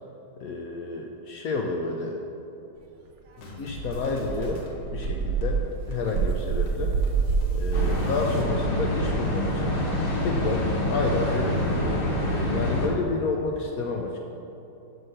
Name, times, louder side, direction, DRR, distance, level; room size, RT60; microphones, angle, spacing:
voice 1, 0.4-2.2 3.6-7.0 7.5-9.8 10.2-14.2, left 3 dB, 75° left, 1 dB, 0.8 m, -30 dB
Dog, 3.3-3.4 3.8-8.0, right 5 dB, 85° right, 1.4 m, -26 dB
sound 1, 3.4-8.4, equal, 60° left, 1.4 m, -44 dB
sound 2, 7.7-12.9, left 1 dB, 40° left, 0.8 m, -26 dB
5.6 x 5.3 x 6.4 m, 2.9 s
omnidirectional pair, 2.0 m